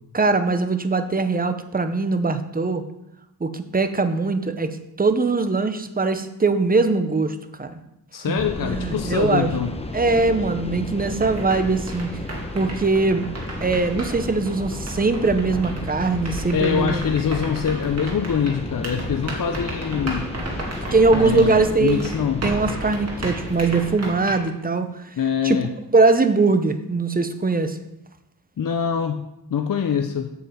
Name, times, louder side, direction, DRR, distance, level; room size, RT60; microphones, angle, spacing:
voice 1, 0.1-2.8 3.4-7.8 8.2-9.5 9.9-12.1 12.5-13.2 13.6-17.1 20.9-22.1 22.4-25.1 25.4-25.6 25.9-27.8, right 3 dB, 20° right, 9 dB, 0.7 m, -21 dB
voice 2, 8.1-9.7 16.5-20.3 21.1-22.5 25.2-25.7 28.6-29.3 29.5-30.3, left 7 dB, 55° left, 6 dB, 0.7 m, -24 dB
sound 1, 8.4-24.0, left 2 dB, 15° left, 0.8 m, -33 dB
sound 2, 11.2-24.3, right 2 dB, 40° right, 2.2 m, -35 dB
8.1 x 5.4 x 7.5 m, 0.85 s
wide cardioid pair, 135°, 40 cm